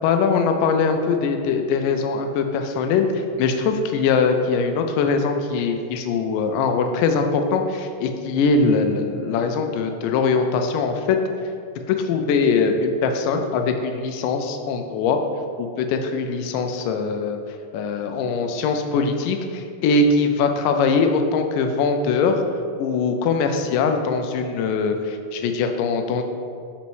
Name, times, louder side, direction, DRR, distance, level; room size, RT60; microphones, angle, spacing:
voice 1, 0.0-11.2 11.9-15.2 15.6-17.4 17.7-22.4 22.8-26.2, left 4 dB, 80° left, 5 dB, 2.1 m, -22 dB
5.3 x 4.1 x 4.6 m, 2.3 s
omnidirectional pair, 3.9 m